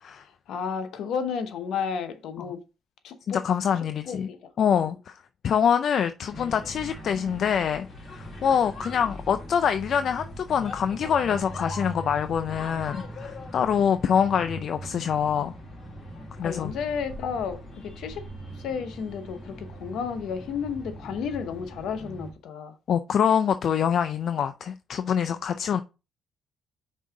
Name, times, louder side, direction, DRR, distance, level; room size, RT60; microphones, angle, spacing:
voice 1, 0.1-2.6 3.0-3.4 4.0-4.5 4.9-5.0 16.4-18.3 18.5-22.8, left 6 dB, 80° left, 0.9 m, -32 dB
voice 2, 3.3-4.3 4.6-5.2 5.4-15.5 16.4-16.7 22.9-25.8, left 8 dB, 60° left, 0.4 m, -25 dB
sound 1, 6.3-22.3, equal, 40° left, 2.7 m, -40 dB
5.4 x 3.8 x 4.7 m
cardioid pair, 90°, 0 cm